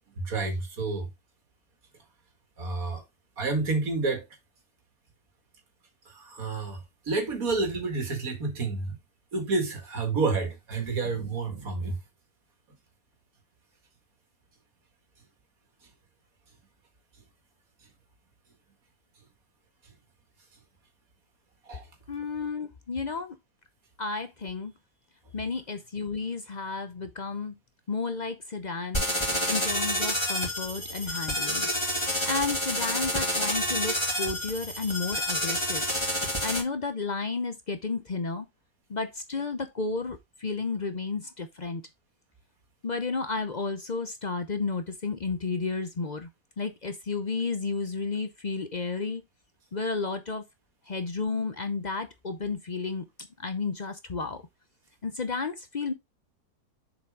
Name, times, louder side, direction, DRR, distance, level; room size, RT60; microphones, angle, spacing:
voice 1, 0.2-1.1 2.6-3.0 3.4-4.3 6.1-9.0 9.3-12.0 21.7-21.9, right 3 dB, 60° right, 2.5 m, -29 dB
voice 2, 22.1-23.4 24.0-24.7 25.3-27.6 27.9-29.1 29.5-31.7 32.3-35.8 36.4-38.5 38.9-41.8 42.8-46.3 46.6-49.2 49.7-50.4 50.9-53.0 53.4-54.4 55.0-55.9, left 4 dB, 45° left, 0.5 m, -32 dB
sound 1, 28.9-36.6, equal, 15° left, 2.7 m, -29 dB
7.0 x 5.0 x 3.6 m
omnidirectional pair, 1.7 m